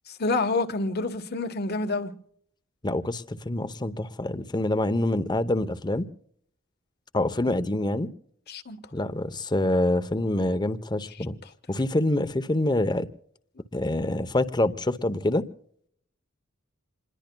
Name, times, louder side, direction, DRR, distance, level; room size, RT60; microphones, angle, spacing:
voice 1, 0.1-2.1 8.5-8.8, left 3 dB, 55° left, 1.3 m, -28 dB
voice 2, 2.8-6.1 7.1-8.1 8.9-11.4 11.7-13.1 13.7-15.5, left 1 dB, 20° left, 0.8 m, -26 dB
27.5 x 21.0 x 2.3 m
head